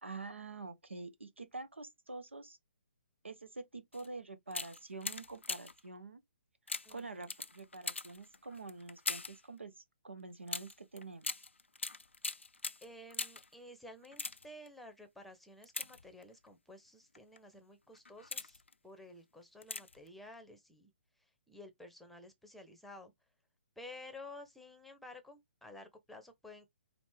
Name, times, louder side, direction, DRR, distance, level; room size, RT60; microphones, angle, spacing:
voice 1, 0.0-2.6 3.2-6.2 6.9-11.3, right 3 dB, 85° right, 1.0 m, -47 dB
sound 1, 3.9-4.1 4.5-5.9 6.7-9.5 10.5-13.5 14.0-14.7 15.6-16.5 17.1-17.4 17.9-18.7 19.6-20.1 20.3-20.4, left 3 dB, 85° left, 0.5 m, -42 dB
voice 2, 6.8-7.3 12.8-20.9 21.5-23.1 23.8-26.7, left 2 dB, ahead, 0.8 m, -53 dB
5.2 x 2.5 x 3.3 m
figure-of-eight pair, 130°, 6 cm